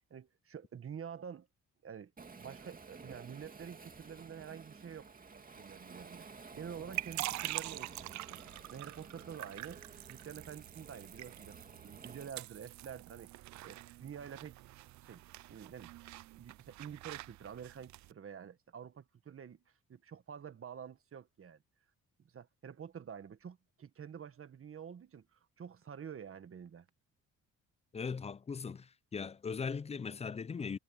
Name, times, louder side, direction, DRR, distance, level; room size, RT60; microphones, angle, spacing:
voice 1, 0.1-1.5 1.8-2.1 2.4-6.3 6.6-8.4 8.7-9.8 10.1-13.3 13.6-14.6 15.0-15.2 15.5-15.9 16.3-19.6 19.9-21.6 22.2-26.9, right 8 dB, 45° right, 1.7 m, -48 dB
Waves surf, 2.2-12.3, right 4 dB, 30° right, 2.4 m, -53 dB
sound 1, 6.5-18.1, right 17 dB, 70° right, 0.4 m, -45 dB
voice 2, 27.9-30.8, left 5 dB, 20° left, 0.4 m, -39 dB
cardioid pair, 90°, 30 cm